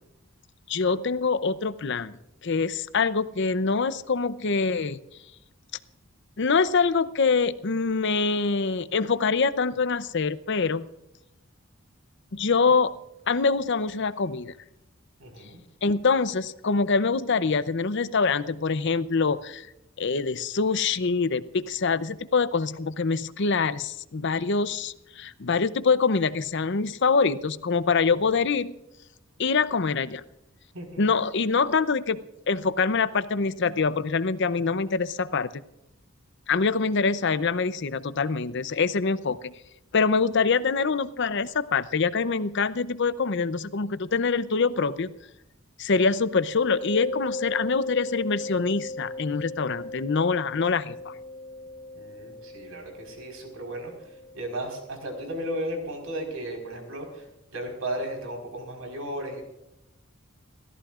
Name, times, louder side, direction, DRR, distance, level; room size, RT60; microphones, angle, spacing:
voice 1, 0.7-2.2 2.4-5.0 6.4-10.9 12.3-12.9 13.3-14.5 15.8-19.7 20.0-28.8 29.4-30.2 31.0-35.5 36.5-39.5 39.9-45.1 45.8-51.1, left 4 dB, 55° left, 14 dB, 0.6 m, -25 dB
voice 2, 15.2-15.6 28.1-28.3 30.7-31.0 51.9-57.3 57.5-59.5, right 1 dB, 80° right, 2 dB, 4.5 m, -35 dB
Mallet percussion, 46.8-55.4, left 2 dB, 25° left, 2.8 m, -37 dB
30.0 x 14.5 x 2.5 m, 0.89 s
head